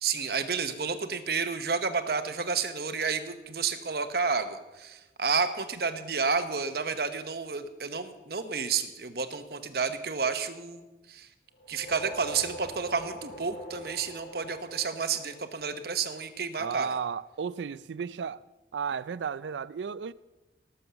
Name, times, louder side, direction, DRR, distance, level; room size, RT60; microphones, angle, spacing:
voice 1, 0.0-11.3 11.7-16.9, right 5 dB, 55° right, 1.0 m, -31 dB
sound 1, 11.5-16.1, equal, 85° left, 2.5 m, -44 dB
voice 2, 16.6-18.4 18.7-20.1, right 6 dB, 80° right, 0.4 m, -34 dB
18.5 x 7.0 x 6.9 m
head